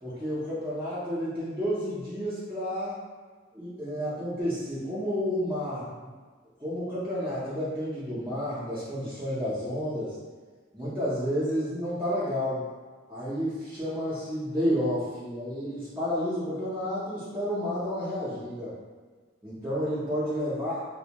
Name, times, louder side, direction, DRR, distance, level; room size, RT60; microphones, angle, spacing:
voice 1, 0.0-3.0 3.5-5.9 6.6-10.2 10.7-12.7 13.1-18.7 19.4-20.8, equal, 10° right, -13 dB, 0.5 m, -30 dB
2.1 x 2.1 x 2.8 m, 1.4 s
head